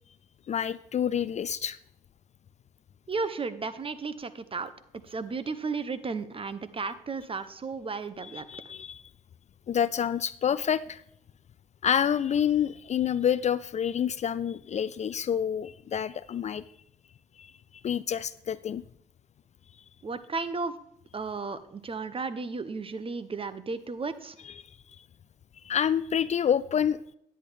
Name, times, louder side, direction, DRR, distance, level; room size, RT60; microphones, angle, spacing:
voice 1, 0.5-1.8 8.2-9.0 9.7-11.0 11.8-16.6 17.4-18.8 24.4-24.5 25.6-27.1, left 8 dB, 40° left, 16 dB, 0.4 m, -28 dB
voice 2, 3.1-4.7 5.1-8.4 20.0-20.7 21.1-24.3, right 4 dB, 30° right, 13 dB, 0.8 m, -34 dB
9.9 x 8.7 x 3.4 m, 0.72 s
supercardioid pair, 55°, 17 cm